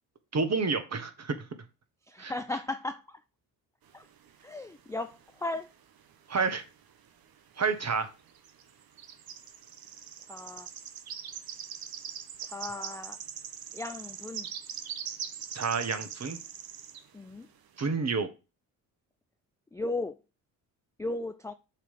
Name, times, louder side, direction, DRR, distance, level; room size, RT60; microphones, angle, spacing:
voice 1, 0.3-1.3 2.2-2.3 6.3-6.6 7.6-8.1 15.5-16.4 17.8-18.3, right 4 dB, 35° right, 1.5 m, -29 dB
voice 2, 2.1-3.2 3.9-4.1 4.4-5.7 10.3-10.7 12.4-13.2 13.7-14.5 17.1-17.5 19.7-20.2 21.0-21.5, left 2 dB, 5° left, 0.4 m, -36 dB
sound 1, 3.9-5.5 5.8-7.1 7.4-7.6 8.2-17.1, right 8 dB, 50° right, 1.0 m, -42 dB
7.3 x 3.3 x 5.6 m
hypercardioid pair, 55°, 46 cm